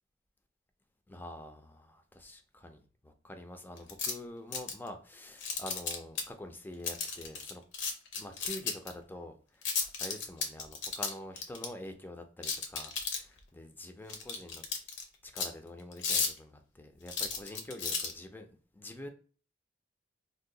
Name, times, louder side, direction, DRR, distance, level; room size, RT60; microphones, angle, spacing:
voice 1, 1.1-7.6 8.1-9.6 10.0-14.6 15.2-18.5 18.7-19.1, left 1 dB, 10° left, 0.4 m, -46 dB
sound 1, 3.8-4.1 4.5-4.9 5.4-6.2 6.8-8.9 9.6-11.7 12.4-13.4 14.1-15.0 15.4-15.5 15.9-16.4 17.1-18.1, left 5 dB, 65° left, 0.6 m, -33 dB
2.7 x 2.2 x 3.7 m
head